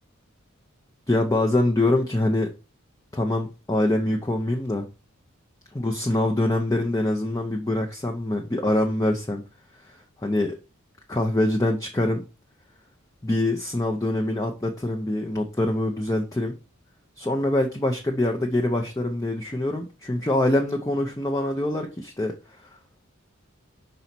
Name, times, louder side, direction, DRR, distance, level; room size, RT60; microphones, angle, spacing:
voice 1, 1.1-2.5 3.1-4.9 5.7-9.4 9.9-10.6 11.1-12.2 13.2-16.6 17.2-22.3, left 1 dB, 15° left, 0.7 m, -24 dB
5.5 x 4.0 x 6.0 m
head